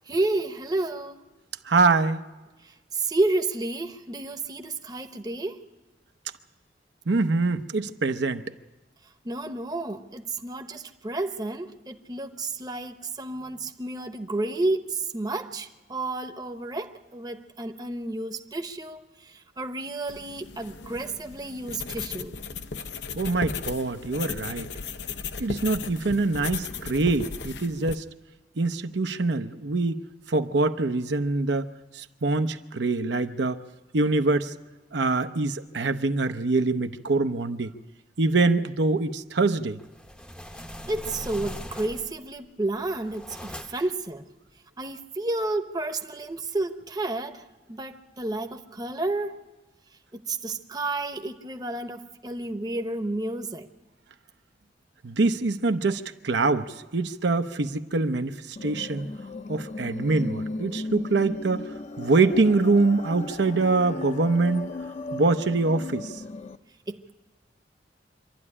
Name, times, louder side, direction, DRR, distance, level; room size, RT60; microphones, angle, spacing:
voice 1, 0.1-1.2 2.9-5.6 9.2-22.3 40.9-44.3 44.8-49.4 50.1-53.7 66.9-67.1, right 2 dB, 20° right, 0.9 m, -31 dB
voice 2, 1.7-2.2 7.1-8.4 23.2-24.7 25.4-28.0 28.6-29.9 30.3-31.7 31.9-33.6 33.9-34.5 34.9-37.7 38.2-39.8 55.0-59.1 59.5-61.7 62.0-64.7 65.1-66.1, right 3 dB, 75° right, 0.7 m, -24 dB
sound 1, 20.1-28.0, left 5 dB, 75° left, 0.7 m, -36 dB
sound 2, 39.8-42.3 42.7-44.0, equal, 5° left, 0.7 m, -40 dB
sound 3, 58.6-66.6, left 2 dB, 40° left, 0.7 m, -36 dB
25.5 x 12.0 x 9.8 m
head